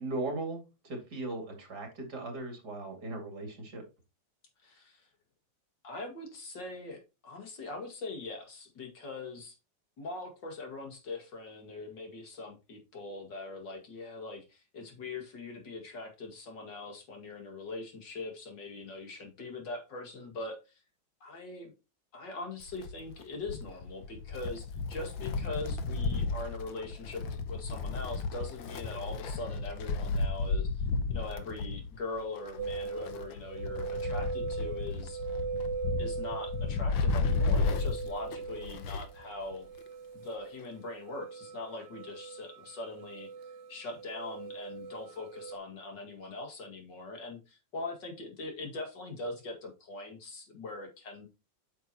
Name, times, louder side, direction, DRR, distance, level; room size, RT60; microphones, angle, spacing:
voice 1, 0.0-3.8, right 2 dB, 60° right, 3 dB, 2.9 m, -38 dB
voice 2, 4.6-5.1 5.8-9.6 10.0-20.6 21.2-21.7 22.1-30.8 31.1-35.3 36.0-39.7 40.1-43.3 43.7-51.3, left 3 dB, 70° left, 3 dB, 2.7 m, -42 dB
Wind, 22.6-39.2 39.5-39.6 40.6-40.7, left 4 dB, 85° left, 1.7 m, -33 dB
sound 1, 32.6-45.6, right 6 dB, 80° right, 1.4 m, -40 dB
8.3 x 6.2 x 2.9 m, 0.28 s
omnidirectional pair, 2.0 m